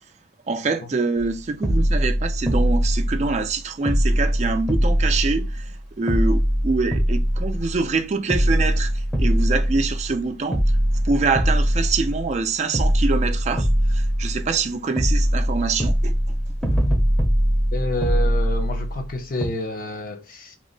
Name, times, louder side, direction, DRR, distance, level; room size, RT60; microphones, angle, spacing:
voice 1, 0.5-10.6 11.0-16.1, right 4 dB, 35° right, 0.4 m, -25 dB
sound 1, 1.2-1.3 1.6-3.5 3.9-5.8 6.1-7.9 8.3-10.2 10.5-12.4 12.7-14.6 15.0-19.1 19.4-19.5, equal, 5° left, 0.6 m, -21 dB
voice 2, 17.7-20.6, left 1 dB, 45° left, 0.4 m, -29 dB
2.9 x 2.0 x 3.7 m
head